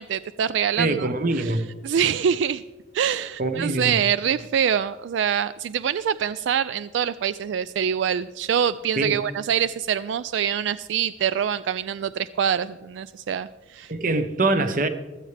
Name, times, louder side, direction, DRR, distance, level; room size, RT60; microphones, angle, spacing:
voice 1, 0.0-1.6 1.8-2.6 2.9-13.9, right 8 dB, 80° right, 0.3 m, -25 dB
voice 2, 0.8-1.7 3.4-4.0 9.0-9.2 13.9-14.9, right 2 dB, 45° right, 0.9 m, -24 dB
15.0 x 13.5 x 3.4 m
head